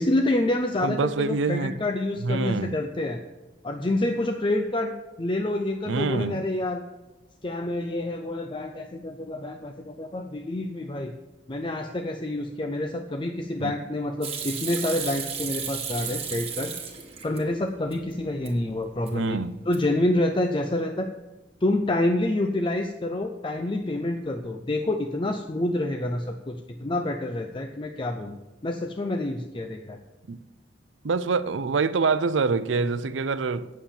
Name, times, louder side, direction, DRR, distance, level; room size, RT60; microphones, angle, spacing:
voice 1, 0.0-3.2 3.6-4.9 5.2-6.8 7.4-11.1 11.5-16.8 17.2-19.4 19.7-21.1 21.6-28.4 28.6-30.0, left 1 dB, 25° left, 0.5 m, -27 dB
voice 2, 0.8-1.7 2.2-2.8 5.9-6.4 13.6-13.7 19.1-19.5 30.3-30.4 31.0-33.7, right 4 dB, 90° right, 0.6 m, -25 dB
Hands / Sink (filling or washing), 14.2-17.4 17.8-18.5 18.9-19.3 19.6-20.1, right 7 dB, 35° right, 1.6 m, -34 dB
9.3 x 7.3 x 7.1 m
head